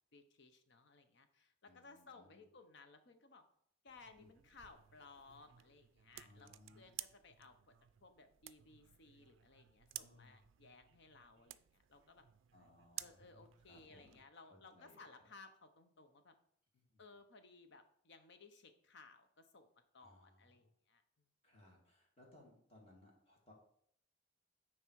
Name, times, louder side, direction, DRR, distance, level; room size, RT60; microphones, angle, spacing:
voice 1, 0.1-3.4 3.8-7.7 8.0-12.2 13.0-16.3 17.0-19.7 19.9-21.3, left 3 dB, 65° left, 8 dB, 0.8 m, -61 dB
voice 2, 1.6-2.4 4.2-4.3 6.2-6.9 10.0-10.5 12.5-15.1 16.7-17.0 20.0-20.7 21.4-23.5, left 1 dB, 35° left, -2 dB, 2.1 m, -65 dB
sound 1, 3.9-14.2, right 15 dB, 70° right, 0.3 m, -55 dB
9.1 x 3.2 x 4.7 m, 0.66 s
head